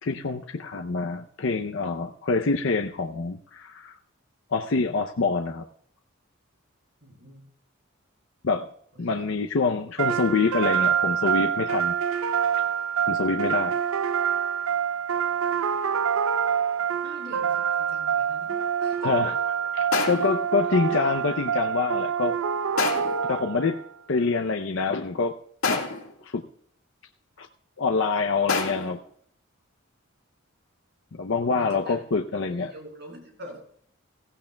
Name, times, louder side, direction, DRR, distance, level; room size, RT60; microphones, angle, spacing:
voice 1, 0.0-4.0 4.5-5.7 8.4-8.7 9.0-11.9 13.1-13.7 19.0-22.4 23.3-23.8 24.1-25.4 25.7-25.8 26.2-26.4 27.4-27.5 27.8-29.0 31.1-32.7, left 4 dB, 60° left, 5 dB, 0.6 m, -26 dB
voice 2, 7.0-7.4 8.9-9.3 17.0-19.1 31.5-32.0 32.5-33.6, equal, 55° right, 2 dB, 4.8 m, -45 dB
sound 1, 10.0-23.8, right 7 dB, 75° right, 0.5 m, -26 dB
sound 2, 19.9-20.4 22.8-23.3 25.6-26.1 28.5-29.0, left 4 dB, 80° left, 1.9 m, -27 dB
16.0 x 15.5 x 2.2 m, 0.65 s
head